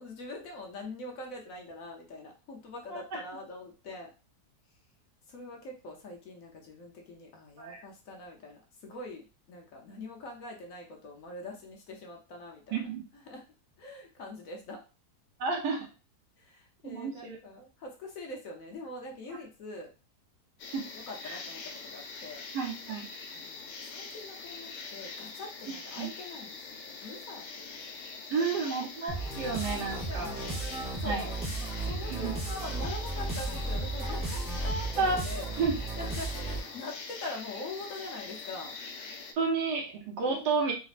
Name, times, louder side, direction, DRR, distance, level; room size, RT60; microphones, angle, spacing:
voice 1, 0.0-4.1 5.3-12.9 13.3-13.5 13.8-14.8 16.4-19.9 21.1-22.4 23.3-28.1 28.4-28.9 29.7-30.6 31.0-31.3 31.8-35.5 35.9-38.8 40.2-40.6, left 2 dB, 60° left, 0 dB, 1.0 m, -43 dB
voice 2, 2.9-3.2 7.6-7.8 12.7-13.0 15.4-15.9 16.8-17.4 19.3-19.4 20.7-20.9 21.2-21.4 22.5-23.1 26.0-26.1 28.3-30.3 31.0-31.3 32.1-32.3 34.1-34.2 35.0-35.2 35.6-35.7 39.4-40.7, right 4 dB, 85° right, 1 dB, 1.5 m, -31 dB
sound 1, 20.6-39.3, left 4 dB, 90° left, 1.3 m, -43 dB
sound 2, 29.1-36.8, right 2 dB, 5° right, 0.5 m, -35 dB
4.1 x 2.5 x 2.4 m, 0.32 s
omnidirectional pair, 1.8 m